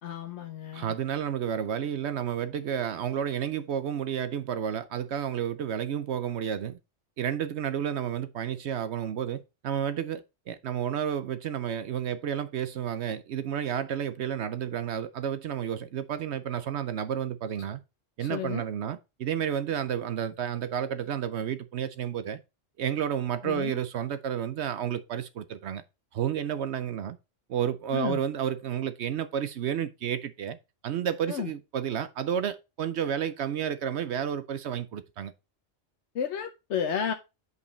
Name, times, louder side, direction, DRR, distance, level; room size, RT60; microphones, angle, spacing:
voice 1, 0.0-0.9 18.2-18.6 23.4-23.8 27.9-28.2 31.3-31.5 36.1-37.1, left 8 dB, 70° left, 1.0 m, -32 dB
voice 2, 0.7-6.8 7.2-17.8 18.2-22.4 22.8-25.8 26.1-27.2 27.5-30.6 30.8-35.3, right 9 dB, 70° right, 0.9 m, -31 dB
9.3 x 5.5 x 3.1 m
omnidirectional pair, 1.3 m